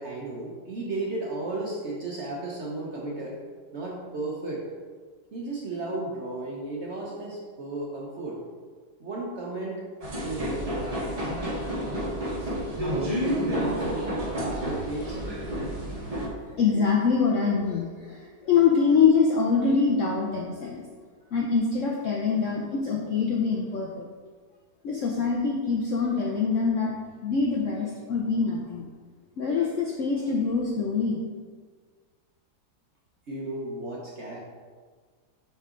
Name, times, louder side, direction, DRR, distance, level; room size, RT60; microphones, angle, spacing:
voice 1, 0.0-3.4 3.7-4.6 5.3-8.4 9.0-9.8 10.2-11.1 12.4-15.2 33.3-34.4, right 2 dB, 50° right, -3 dB, 0.9 m, -34 dB
sound 1, 10.0-16.3, equal, 35° right, 0.6 m, -30 dB
voice 2, 16.5-20.9 21.3-24.1 24.8-26.9 27.2-28.8 29.4-31.3, left 5 dB, 70° left, -1 dB, 0.7 m, -24 dB
5.4 x 5.3 x 3.7 m, 1.5 s
omnidirectional pair, 2.0 m